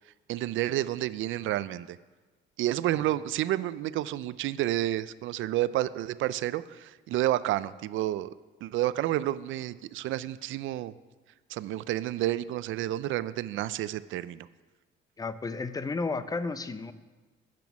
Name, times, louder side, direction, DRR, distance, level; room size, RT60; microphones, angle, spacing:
voice 1, 0.3-2.0 2.6-8.3 8.6-10.9 11.5-14.5, right 14 dB, 80° right, 16 dB, 0.4 m, -30 dB
voice 2, 15.2-16.9, left 3 dB, 20° left, 12 dB, 0.5 m, -32 dB
10.5 x 6.1 x 6.0 m, 1.3 s
cardioid pair, 90°, 20 cm